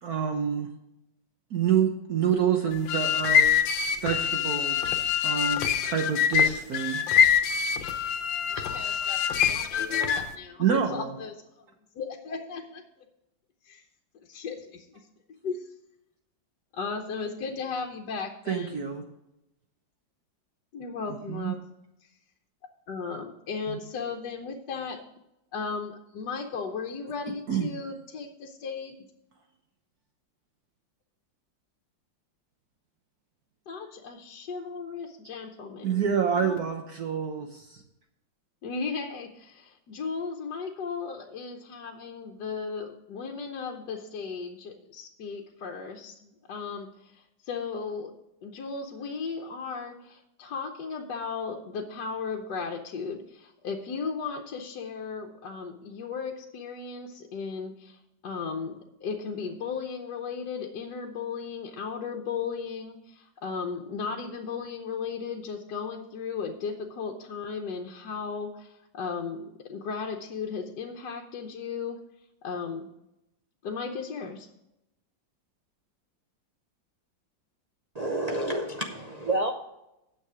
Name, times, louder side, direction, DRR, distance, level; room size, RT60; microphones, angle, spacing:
voice 1, 0.0-0.7 1.5-3.5 4.0-7.0 10.6-11.1 18.5-19.0 21.3-21.5 23.7-23.8 27.5-27.7 35.8-37.8, right 7 dB, 60° right, 4 dB, 1.3 m, -27 dB
sound 1, 2.7-10.4, left 8 dB, 85° left, 1.5 m, -25 dB
voice 2, 8.5-11.6 11.9-12.8 13.6-13.8 14.3-15.0 15.4-15.7 16.7-18.8 20.7-21.6 22.9-25.0 25.5-29.0 33.7-36.0 36.3-36.7 38.6-48.1 48.4-72.0 72.4-72.9 73.6-74.5, left 5 dB, 65° left, 2 dB, 1.4 m, -36 dB
voice 3, 77.9-79.5, right 1 dB, 75° right, 2 dB, 0.3 m, -29 dB
9.2 x 7.5 x 4.9 m, 0.86 s
omnidirectional pair, 2.0 m